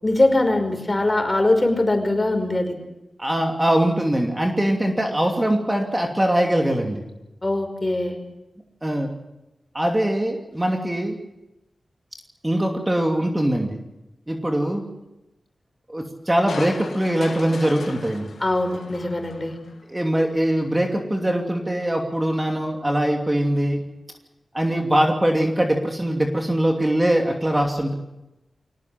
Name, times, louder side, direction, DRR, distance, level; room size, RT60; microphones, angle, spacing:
voice 1, 0.0-2.8 7.4-8.2 18.4-19.6, left 2 dB, 25° left, 6 dB, 5.4 m, -21 dB
voice 2, 3.2-7.0 8.8-9.1 9.7-11.2 12.4-13.8 14.3-14.8 15.9-18.3 19.9-23.8 24.5-27.9, right 1 dB, 20° right, 2 dB, 2.8 m, -22 dB
Crushing, 16.5-19.9 20.3-20.4, left 4 dB, 85° left, 2.7 m, -37 dB
23.5 x 18.0 x 7.7 m, 0.96 s
cardioid pair, 55°, 0 cm